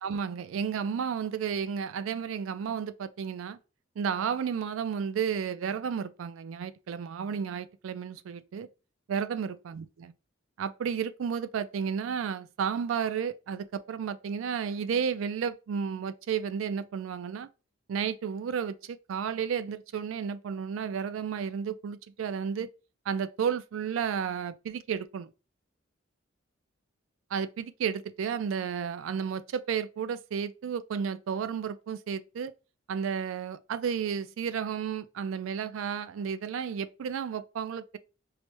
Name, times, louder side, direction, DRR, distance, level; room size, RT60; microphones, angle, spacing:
voice 1, 0.0-3.6 4.0-8.7 9.1-10.1 10.6-17.5 17.9-22.7 23.1-25.3 27.3-32.5 32.9-38.0, right 7 dB, 85° right, 0.3 m, -32 dB
4.6 x 2.1 x 2.9 m
head